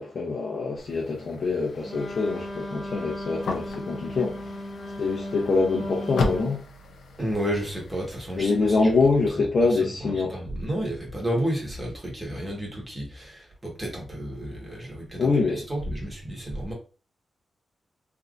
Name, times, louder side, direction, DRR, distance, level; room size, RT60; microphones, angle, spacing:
voice 1, 0.0-4.7 5.0-6.6 8.3-10.4 15.2-15.7, left 3 dB, 55° left, 0.7 m, -25 dB
sound 1, 0.8-9.3, left 3 dB, 90° left, 0.5 m, -37 dB
Wind instrument woodwind instrument, 1.8-6.6, left 1 dB, 25° left, 1.1 m, -35 dB
voice 2, 7.2-8.8 9.8-16.7, equal, 15° right, 1.3 m, -31 dB
3.4 x 2.7 x 2.5 m
wide cardioid pair, 125°, 0 cm